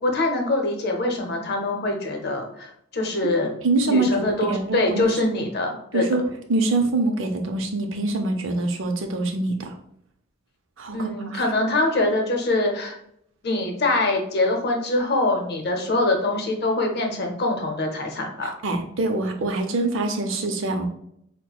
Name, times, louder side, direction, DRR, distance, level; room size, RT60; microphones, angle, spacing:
voice 1, 0.0-3.5 3.8-6.0 10.9-13.0 13.4-18.5, left 2 dB, 55° left, 2 dB, 0.7 m, -24 dB
voice 2, 3.6-5.0 5.9-6.2 6.5-9.7 10.8-11.4 18.6-20.9, right 2 dB, 70° right, 5 dB, 0.6 m, -24 dB
5.8 x 2.1 x 2.3 m, 0.73 s
head